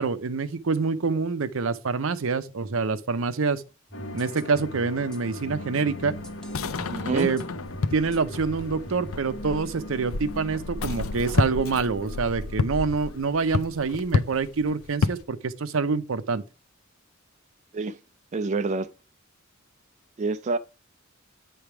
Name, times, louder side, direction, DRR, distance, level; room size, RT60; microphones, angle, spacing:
voice 1, 0.0-3.6 4.1-6.1 7.1-7.4 7.9-16.4, right 4 dB, 70° right, 0.6 m, -26 dB
sound 1, 3.9-14.0, left 1 dB, 60° left, 1.0 m, -41 dB
sound 2, 3.9-9.1, left 1 dB, 5° left, 1.0 m, -43 dB
sound 3, 6.0-15.2, left 4 dB, 85° left, 0.5 m, -30 dB
voice 2, 6.9-7.3 17.7-18.0 18.3-18.9 20.2-20.6, right 3 dB, 35° right, 0.4 m, -27 dB
9.2 x 3.4 x 5.8 m
head